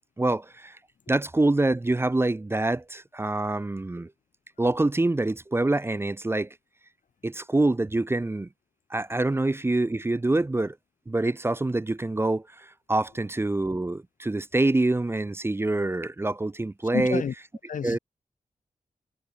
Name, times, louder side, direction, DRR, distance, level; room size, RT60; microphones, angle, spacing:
voice 1, 0.2-0.8 1.1-4.1 4.6-6.5 7.2-8.5 8.9-10.8 11.1-17.2 17.8-18.0, right 2 dB, 20° right, 0.5 m, -25 dB
voice 2, 16.9-17.3 17.7-18.0, left 7 dB, 75° left, 0.6 m, -29 dB
wide cardioid pair, 90°, 14 cm